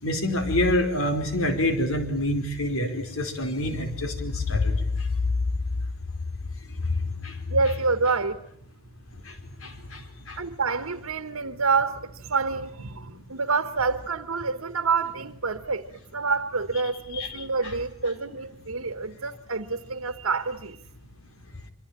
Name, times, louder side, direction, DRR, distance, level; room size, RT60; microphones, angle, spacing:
voice 1, 0.0-5.1 6.9-7.0 7.2-7.4 9.2-9.4 9.6-10.4 17.1-17.7, left 1 dB, 75° left, 4.8 m, -27 dB
voice 2, 7.5-8.4 10.4-15.9 16.1-20.8, right 4 dB, 80° right, 1.3 m, -27 dB
26.0 x 25.5 x 8.9 m
head